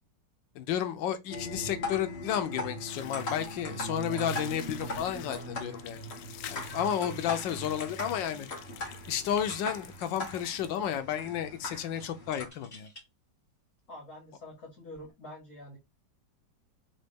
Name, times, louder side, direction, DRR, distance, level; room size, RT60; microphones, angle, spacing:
voice 1, 0.5-6.0 6.5-8.5 9.1-12.9, left 9 dB, 90° left, 1.4 m, -32 dB
sound 1, 1.3-12.5, left 1 dB, 35° left, 2.0 m, -39 dB
sound 2, 2.9-11.0, left 10 dB, 70° left, 1.0 m, -48 dB
voice 2, 7.1-7.4 13.9-15.8, left 1 dB, 50° left, 2.3 m, -46 dB
sound 3, 9.0-9.1 9.4-10.0 11.9-13.1 13.8-13.9 14.8-15.1, left 1 dB, 20° left, 2.8 m, -54 dB
4.1 x 3.7 x 3.5 m
omnidirectional pair, 2.0 m